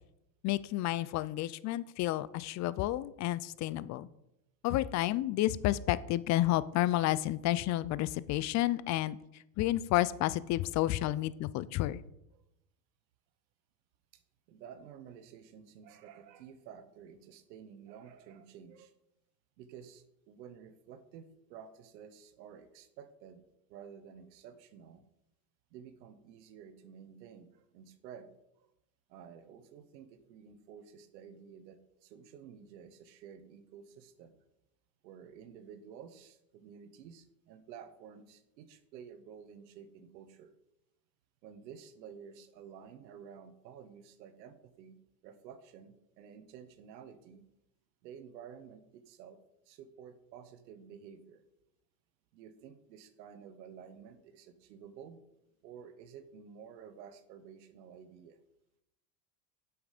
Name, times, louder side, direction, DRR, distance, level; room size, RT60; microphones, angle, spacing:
voice 1, 0.4-4.1 4.6-9.2 9.6-12.0, left 15 dB, 40° left, 18 dB, 0.4 m, -30 dB
voice 2, 14.5-18.9 19.6-23.4 23.7-25.0 25.7-28.3 28.6-28.7 29.1-34.4 35.0-40.5 41.4-45.0 45.2-47.4 48.0-49.4 49.6-51.4 52.3-55.2 55.6-58.4, right 7 dB, 85° right, 10 dB, 1.1 m, -52 dB
8.1 x 6.3 x 5.0 m, 0.84 s
supercardioid pair, 100°, 50 cm